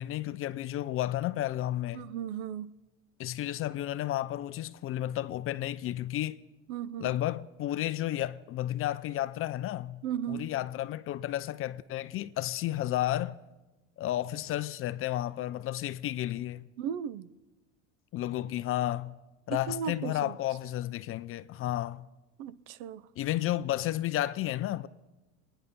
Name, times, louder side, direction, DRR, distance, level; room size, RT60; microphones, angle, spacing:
voice 1, 0.0-2.1 3.2-6.4 7.0-13.4 14.0-16.7 18.1-19.2 19.5-22.1 23.2-24.9, left 13 dB, 35° left, 0.5 m, -32 dB
voice 2, 1.9-2.7 6.7-7.1 10.0-10.5 16.8-17.3 19.5-20.4 22.4-23.1, right 9 dB, 65° right, 0.8 m, -36 dB
26.0 x 10.0 x 5.4 m
supercardioid pair, 115°, 37 cm